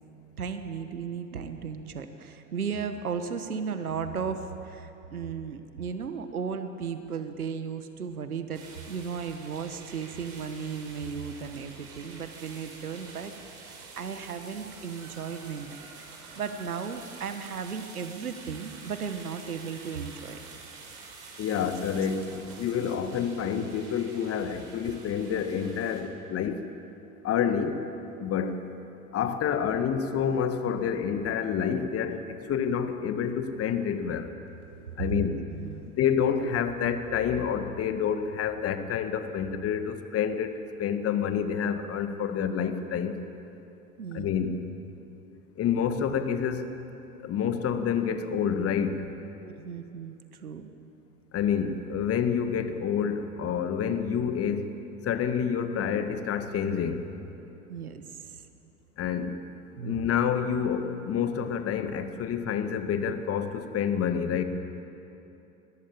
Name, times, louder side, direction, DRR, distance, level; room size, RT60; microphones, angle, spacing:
voice 1, 0.4-13.3 13.6-15.8 16.4-20.4 21.9-22.0 22.8-22.9 35.2-35.8 44.0-44.4 49.4-50.2 50.4-50.7 57.7-58.4 59.8-60.1, right 6 dB, 75° right, 8 dB, 1.5 m, -35 dB
sound 1, 8.5-26.0, right 4 dB, 45° right, 6.0 m, -47 dB
voice 2, 21.4-26.7 27.2-27.9 28.2-28.6 29.1-34.3 35.0-35.4 35.8-43.2 44.1-44.6 45.6-46.7 47.2-49.0 51.3-54.8 55.0-57.1 59.0-59.4 59.8-64.4, left 7 dB, 30° left, 8 dB, 1.9 m, -28 dB
22.5 x 19.0 x 8.9 m, 2.9 s
figure-of-eight pair, 80°, 44 cm